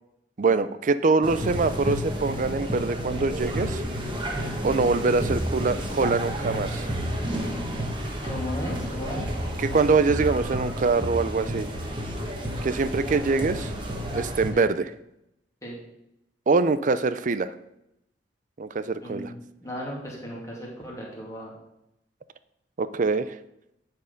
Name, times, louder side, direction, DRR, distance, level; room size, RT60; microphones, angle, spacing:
voice 1, 0.4-3.8 4.6-6.9 9.6-11.7 12.6-13.7 14.1-14.9 16.5-17.5 18.6-19.3 22.8-23.4, right 4 dB, 45° right, 14 dB, 0.4 m, -24 dB
sound 1, 1.2-14.5, equal, 30° right, 1.3 m, -31 dB
voice 2, 8.3-9.3 14.5-14.6 15.6-15.8 19.0-21.5, equal, 20° left, -4 dB, 2.4 m, -35 dB
10.5 x 4.6 x 5.2 m, 0.84 s
head